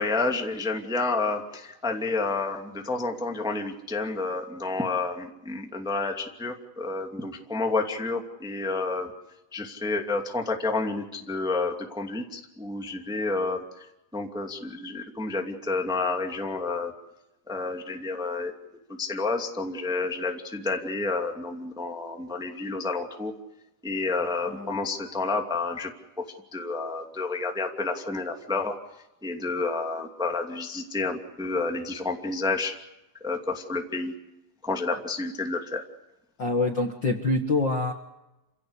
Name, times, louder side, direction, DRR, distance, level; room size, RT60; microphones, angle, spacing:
voice 1, 0.0-9.1 9.5-13.8 14.1-16.9 17.5-18.5 19.0-23.3 23.8-25.9 26.5-28.8 29.2-32.7 33.2-34.1 34.6-35.8, left 3 dB, ahead, 2 dB, 1.7 m, -30 dB
voice 2, 24.5-24.8 36.4-37.9, left 2 dB, 40° left, 3 dB, 1.9 m, -26 dB
28.5 x 17.0 x 8.3 m, 0.94 s
omnidirectional pair, 4.2 m